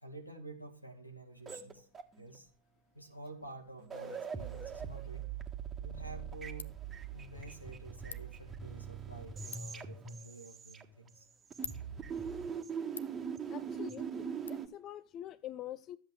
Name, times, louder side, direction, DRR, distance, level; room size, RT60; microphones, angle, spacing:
voice 1, 0.0-1.9 2.2-2.5 2.9-5.3 5.8-6.8 7.1-11.3, right 2 dB, 85° left, 2.2 m, -50 dB
sound 1, 1.5-2.4 3.4-3.5 3.8-11.2 11.5-14.7, right 7 dB, 20° right, 1.5 m, -42 dB
Ratchet pawl, 5.4-14.5, left 6 dB, 70° left, 0.7 m, -53 dB
voice 2, 13.5-16.0, left 12 dB, 30° left, 0.5 m, -45 dB
13.5 x 7.9 x 6.2 m
figure-of-eight pair, 90°, 0 cm